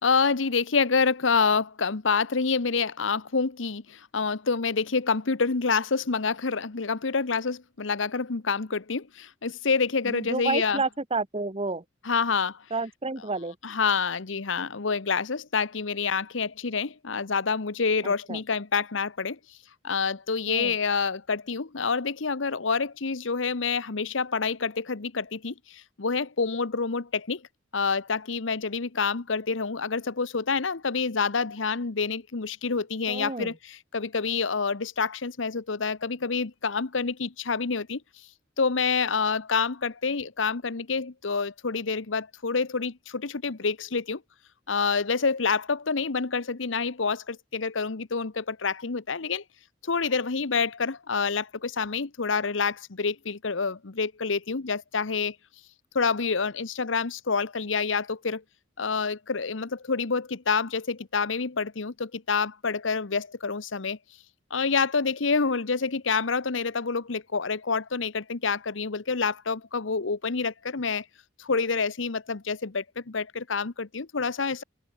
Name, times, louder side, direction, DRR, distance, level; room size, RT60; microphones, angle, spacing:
voice 1, 0.0-10.8 12.0-12.6 13.6-19.4 19.8-27.4 27.7-38.0 38.6-44.2 44.7-49.4 49.8-55.4 55.9-58.4 58.8-64.0 64.5-71.0 71.4-74.6, left 5 dB, 75° left, 1.0 m, -27 dB
voice 2, 10.0-11.8 12.7-13.5 18.0-18.4 20.5-20.7 33.1-33.5, right 3 dB, 30° right, 1.6 m, -30 dB
open air
head